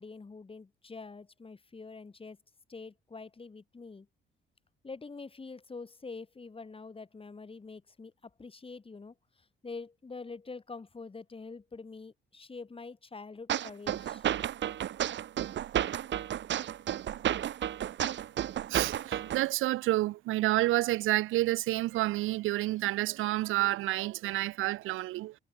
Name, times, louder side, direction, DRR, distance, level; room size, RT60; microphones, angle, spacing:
voice 1, 0.0-2.4 2.7-4.1 4.8-9.1 9.6-14.3, left 4 dB, 25° left, 6.1 m, -45 dB
sound 1, 13.5-19.5, right 11 dB, 65° right, 1.7 m, -32 dB
voice 2, 18.7-25.3, right 17 dB, 90° right, 0.8 m, -29 dB
cardioid pair, 90°, 20 cm